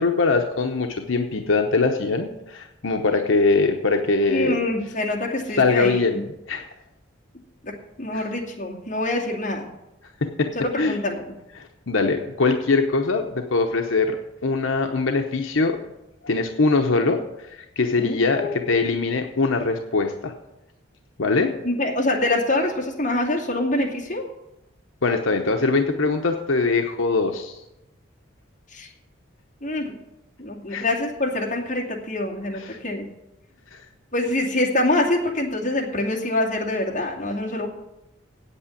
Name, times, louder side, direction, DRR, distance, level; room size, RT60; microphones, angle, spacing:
voice 1, 0.0-4.6 5.6-6.6 8.1-8.2 10.2-10.5 10.8-11.0 11.6-14.2 14.4-15.8 16.2-17.2 17.4-20.3 21.2-21.5 25.0-27.6 30.7-30.8 32.5-32.8 33.7-33.8, left 3 dB, 80° left, 3 dB, 0.9 m, -22 dB
voice 2, 4.3-6.2 7.6-9.7 10.6-11.3 18.0-18.6 21.6-24.2 28.7-28.9 29.6-30.0 30.4-33.1 34.1-37.7, left 2 dB, 40° left, -2 dB, 2.4 m, -25 dB
8.5 x 8.5 x 8.5 m, 0.91 s
head